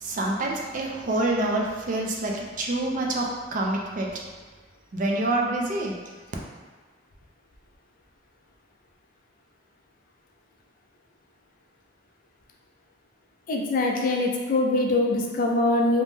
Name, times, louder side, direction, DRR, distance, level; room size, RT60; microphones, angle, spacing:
voice 1, 0.0-4.2 4.9-6.0, right 2 dB, 45° right, -1 dB, 0.4 m, -27 dB
voice 2, 13.5-16.0, left 2 dB, 45° left, 0 dB, 0.3 m, -23 dB
2.6 x 2.0 x 3.4 m, 1.4 s
head